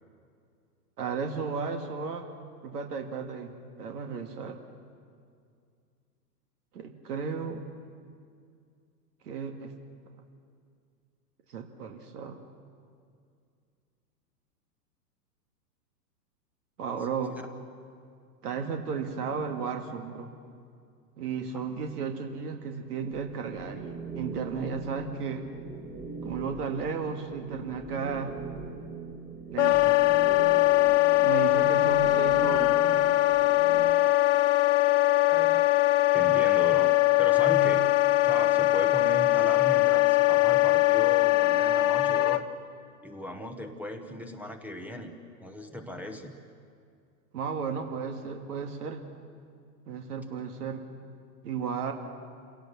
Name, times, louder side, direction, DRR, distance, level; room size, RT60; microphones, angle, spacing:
voice 1, 1.0-2.3 2.6-4.6 6.7-7.6 9.2-9.7 11.5-12.4 16.8-17.4 18.4-20.3 21.2-25.5 26.2-28.3 29.5-30.0 31.2-32.7 47.3-49.0 49.9-50.8 51.4-51.9, right 5 dB, 65° right, 5 dB, 2.1 m, -34 dB
sound 1, 23.1-33.9, right 4 dB, 20° right, 1.9 m, -41 dB
Wind instrument woodwind instrument, 29.6-42.4, left 17 dB, 50° left, 1.0 m, -22 dB
voice 2, 35.3-35.7 36.1-37.9 38.2-42.4 43.0-45.1 45.4-46.3, equal, 5° right, 6 dB, 1.0 m, -37 dB
27.0 x 17.5 x 7.0 m, 2.3 s
hypercardioid pair, 130°, 49 cm